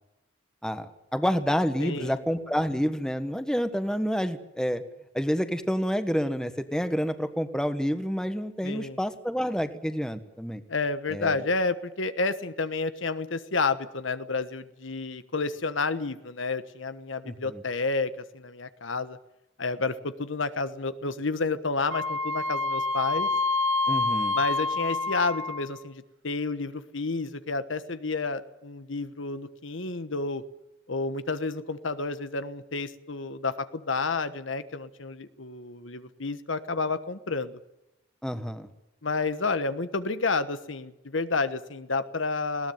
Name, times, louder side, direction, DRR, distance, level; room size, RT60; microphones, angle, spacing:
voice 1, 0.6-4.8 5.1-10.6 11.1-11.4 17.2-17.6 23.9-24.4 38.2-38.7, equal, 5° left, 9 dB, 1.3 m, -28 dB
voice 2, 1.8-2.2 8.6-9.0 10.7-19.2 19.6-23.3 24.3-30.4 30.9-37.6 39.0-42.7, left 3 dB, 80° left, 12 dB, 1.3 m, -30 dB
Wind instrument woodwind instrument, 21.9-25.8, left 3 dB, 90° right, 2.0 m, -27 dB
20.0 x 18.0 x 9.5 m, 0.92 s
head